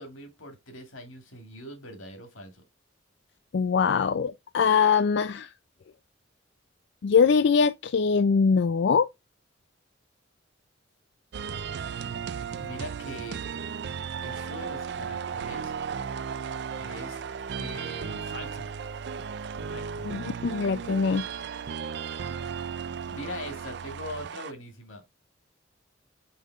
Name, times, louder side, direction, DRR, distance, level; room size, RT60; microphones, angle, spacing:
voice 1, 0.0-2.6 12.6-13.4 14.2-15.7 16.7-17.2 17.6-18.7 19.5-20.1 22.8-25.0, left 1 dB, 85° left, 2.2 m, -42 dB
voice 2, 3.5-5.5 7.0-9.1 20.1-21.3, left 6 dB, 60° left, 0.4 m, -22 dB
sound 1, 11.3-24.5, right 6 dB, 55° right, 0.4 m, -35 dB
5.6 x 5.0 x 3.5 m
head